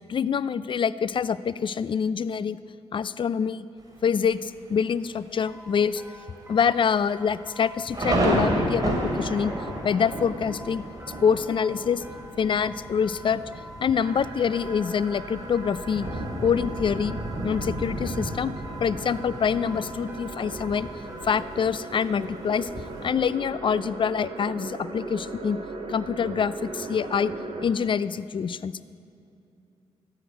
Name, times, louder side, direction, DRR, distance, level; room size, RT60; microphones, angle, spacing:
voice 1, 0.0-2.6 2.9-3.7 4.0-6.0 6.5-9.5 9.8-10.8 11.2-12.0 12.4-13.4 13.8-16.1 16.4-17.2 17.4-18.5 18.8-20.9 21.2-22.7 23.0-25.6 25.9-27.3 27.6-28.7, left 7 dB, 45° left, 17 dB, 0.4 m, -25 dB
Thunder, 3.8-4.3 4.9-5.0 5.3-5.7 6.0-6.1 6.8-23.1, right 1 dB, 35° right, 2.7 m, -32 dB
sound 1, 5.5-21.6, equal, 20° right, 1.7 m, -47 dB
sound 2, 13.9-27.7, right 3 dB, 50° right, 1.6 m, -39 dB
14.5 x 5.9 x 8.2 m, 2.5 s
cardioid pair, 70°, 11 cm